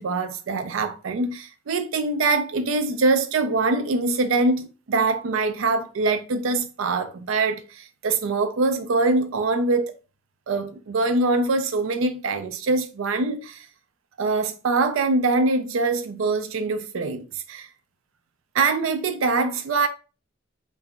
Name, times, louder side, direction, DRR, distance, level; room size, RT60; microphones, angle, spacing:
voice 1, 0.0-9.9 10.5-13.6 14.2-17.7 18.5-19.9, right 3 dB, 90° right, 0.4 m, -23 dB
2.6 x 2.2 x 3.6 m
head